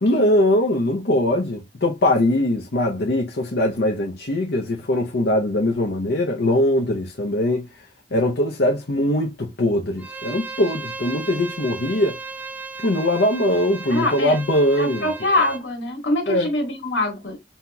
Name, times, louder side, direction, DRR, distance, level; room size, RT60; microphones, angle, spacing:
voice 1, 0.0-7.7 8.1-12.2 12.8-15.1 16.3-16.5, left 1 dB, 65° left, 0.7 m, -21 dB
Bowed string instrument, 10.0-15.6, right 4 dB, 10° right, 0.4 m, -36 dB
voice 2, 13.9-14.4 14.8-17.4, left 2 dB, 85° left, 1.7 m, -24 dB
5.5 x 2.9 x 2.2 m
head